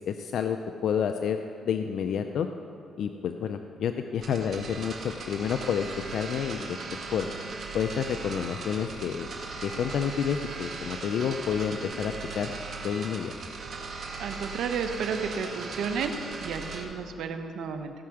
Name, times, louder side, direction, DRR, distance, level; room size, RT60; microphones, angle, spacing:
voice 1, 0.1-0.6 0.8-2.5 3.0-5.9 6.1-6.8 7.1-7.3 7.7-9.3 9.6-12.5 12.8-13.3, left 7 dB, 70° left, 7 dB, 0.5 m, -29 dB
sound 1, 4.1-16.8, right 4 dB, 50° right, 2.0 m, -38 dB
voice 2, 14.2-16.1 16.4-17.9, right 6 dB, 75° right, 7 dB, 0.9 m, -32 dB
16.5 x 5.7 x 6.4 m, 2.8 s
cardioid pair, 90°, 0 cm